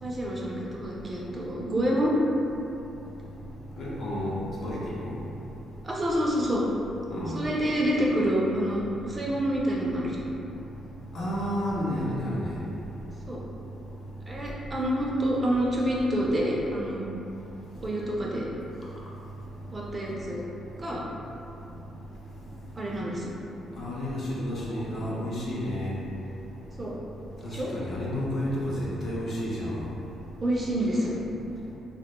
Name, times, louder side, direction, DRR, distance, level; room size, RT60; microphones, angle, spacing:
voice 1, 0.0-2.1 5.8-6.7 7.3-10.2 13.3-13.4 14.3-17.1 17.8-18.5 19.7-20.4 20.8-21.0 22.8-23.3 26.8-27.0 27.5-27.7 30.4-31.2, equal, 30° right, -4 dB, 0.4 m, -27 dB
voice 2, 3.8-4.3 4.6-5.1 7.1-7.4 11.1-12.5 23.8-25.9 27.4-29.8, equal, 55° left, -7 dB, 0.6 m, -31 dB
2.2 x 2.1 x 2.9 m, 2.8 s
cardioid pair, 90°, 0 cm